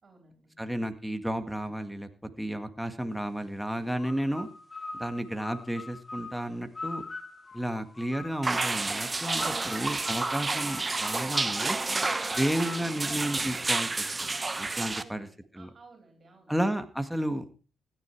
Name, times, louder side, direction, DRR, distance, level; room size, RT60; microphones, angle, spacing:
voice 1, 0.0-0.6 14.9-16.5, right 4 dB, 45° right, 3 dB, 4.2 m, -55 dB
voice 2, 0.6-2.1 2.4-4.5 4.9-7.0 7.5-11.8 12.3-15.3 15.5-15.7 16.5-17.4, right 1 dB, 5° right, 8 dB, 1.8 m, -32 dB
sound 1, 4.0-8.7 9.4-13.8, left 3 dB, 30° left, 2.4 m, -43 dB
sound 2, 8.4-15.0, right 3 dB, 25° right, 1.0 m, -30 dB
15.5 x 10.5 x 4.7 m, 0.36 s
supercardioid pair, 65°, 0 cm